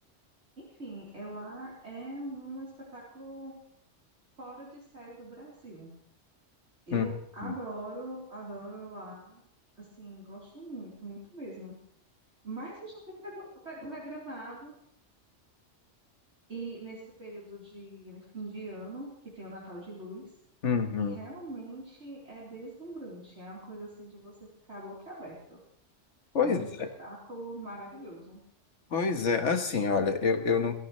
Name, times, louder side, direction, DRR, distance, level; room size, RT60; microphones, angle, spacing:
voice 1, 0.6-3.5 4.4-5.9 6.9-9.4 9.8-11.8 12.4-14.7 16.5-20.3 21.0-25.6 26.4-26.7 27.0-28.4, right 1 dB, 65° right, -7 dB, 4.4 m, -42 dB
voice 2, 20.6-21.2 26.3-26.6 28.9-30.8, left 5 dB, 75° left, 6 dB, 1.7 m, -27 dB
23.5 x 14.0 x 3.3 m, 0.67 s
omnidirectional pair, 1.2 m